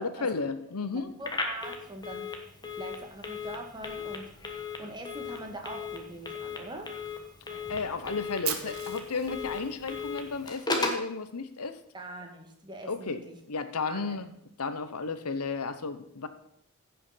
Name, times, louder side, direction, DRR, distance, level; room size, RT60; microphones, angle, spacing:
voice 1, 0.0-1.1 7.5-11.8 12.9-13.2 13.5-14.3 14.6-16.3, left 4 dB, 90° left, 11 dB, 0.9 m, -33 dB
voice 2, 0.9-2.5 2.7-6.9 11.9-13.4 13.9-14.2, right 1 dB, 20° right, 3 dB, 1.7 m, -43 dB
Telephone, 1.2-11.1, left 4 dB, 20° left, 1.3 m, -36 dB
Fire, 8.4-10.5, right 9 dB, 80° right, 1.4 m, -37 dB
15.5 x 5.8 x 5.7 m, 0.72 s
head